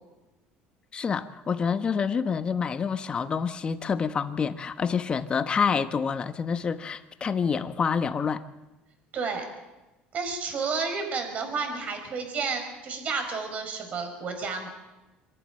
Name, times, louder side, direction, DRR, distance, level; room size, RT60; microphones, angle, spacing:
voice 1, 0.9-8.4, left 6 dB, 25° left, 10 dB, 1.1 m, -27 dB
voice 2, 9.1-9.5 10.1-14.7, right 4 dB, 40° right, 5 dB, 4.9 m, -31 dB
25.5 x 11.5 x 9.1 m, 1.1 s
cardioid pair, 130°, 4 cm